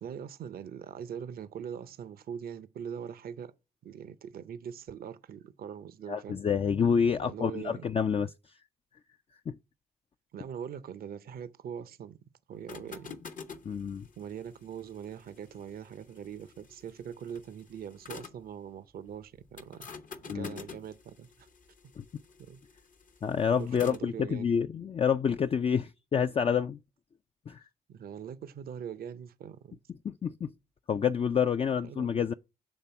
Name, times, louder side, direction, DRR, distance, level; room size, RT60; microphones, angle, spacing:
voice 1, 0.0-3.5 3.8-6.4 7.2-7.9 10.3-12.2 12.5-13.1 14.2-19.9 20.3-21.5 22.4-22.6 23.6-24.5 27.9-29.8 31.8-32.1, right 8 dB, 65° right, 0.6 m, -42 dB
voice 2, 6.1-8.3 9.5-9.6 13.6-14.0 20.3-20.6 22.0-22.1 23.2-26.8 27.5-27.6 30.0-30.5 30.9-32.3, left 7 dB, 35° left, 0.4 m, -28 dB
sound 1, 12.5-18.5 19.6-24.1, left 5 dB, 55° left, 0.9 m, -48 dB
7.2 x 3.4 x 5.6 m
supercardioid pair, 50°, 16 cm